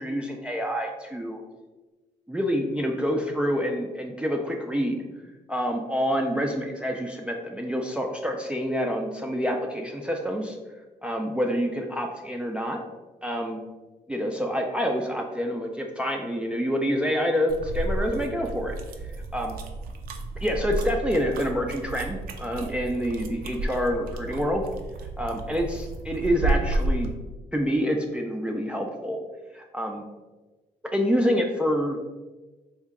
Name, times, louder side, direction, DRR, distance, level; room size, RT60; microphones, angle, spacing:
voice 1, 0.0-1.4 2.3-5.0 5.5-10.6 11.0-12.8 13.2-13.6 14.1-18.8 19.0-19.6 20.4-24.6 25.2-27.1 27.5-29.2 29.5-30.0 30.9-32.0, equal, 5° right, 1 dB, 0.4 m, -27 dB
sound 1, 17.5-27.1, right 2 dB, 70° right, 0.5 m, -32 dB
3.6 x 2.2 x 3.5 m, 1.2 s
cardioid pair, 75°, 16 cm